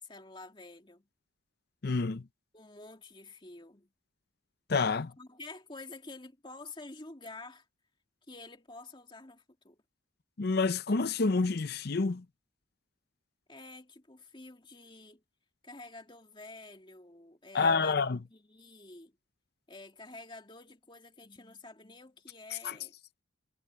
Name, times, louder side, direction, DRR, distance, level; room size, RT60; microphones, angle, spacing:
voice 1, 0.0-1.1 2.5-3.9 5.2-7.6 8.3-9.8 13.5-15.2 15.6-18.0 18.3-19.2 19.7-22.9, left 2 dB, 25° left, 2.5 m, -49 dB
voice 2, 1.8-2.2 4.7-5.1 10.4-12.2 17.5-18.2 22.5-22.8, left 4 dB, 55° left, 0.6 m, -28 dB
head